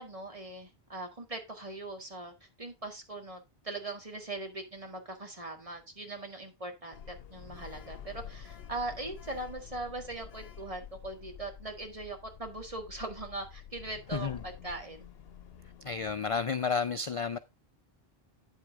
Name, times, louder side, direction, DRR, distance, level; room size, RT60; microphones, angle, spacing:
voice 1, 0.0-15.1, right 2 dB, 35° right, 1.8 m, -40 dB
Sliding door, 6.9-16.5, left 8 dB, 75° left, 1.0 m, -49 dB
voice 2, 15.8-17.4, left 5 dB, 45° left, 0.4 m, -31 dB
9.2 x 7.8 x 3.5 m
omnidirectional pair, 1.0 m